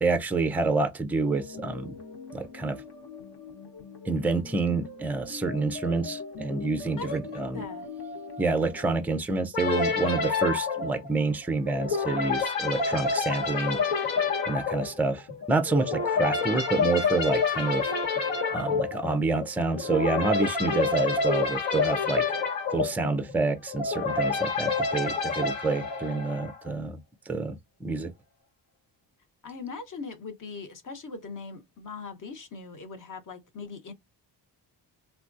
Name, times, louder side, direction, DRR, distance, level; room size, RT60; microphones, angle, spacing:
voice 1, 0.0-2.0 2.3-2.8 4.1-7.6 8.4-13.8 14.5-17.9 18.5-22.2 22.7-27.0 27.3-28.1, right 3 dB, 5° right, 0.3 m, -28 dB
sound 1, 1.2-8.9, left 3 dB, 65° left, 1.2 m, -41 dB
voice 2, 7.0-7.9 29.4-33.9, left 4 dB, 45° left, 0.9 m, -40 dB
sound 2, 9.5-26.7, left 4 dB, 85° left, 1.3 m, -28 dB
3.6 x 2.2 x 2.5 m
cardioid pair, 140°, 44 cm